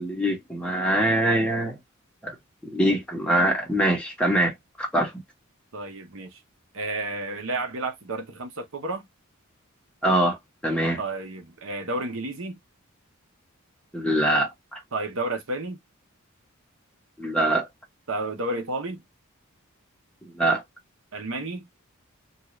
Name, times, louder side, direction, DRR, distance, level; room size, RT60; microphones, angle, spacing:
voice 1, 0.0-1.8 2.2-2.3 2.6-5.1 10.0-10.4 10.6-11.0 13.9-14.8 17.2-17.7 20.2-20.6, right 1 dB, 5° left, 1.0 m, -23 dB
voice 2, 5.7-6.3 6.7-9.1 11.0-12.6 14.9-15.8 18.1-19.0 21.1-21.6, right 2 dB, 70° right, 0.8 m, -31 dB
2.7 x 2.4 x 3.0 m
head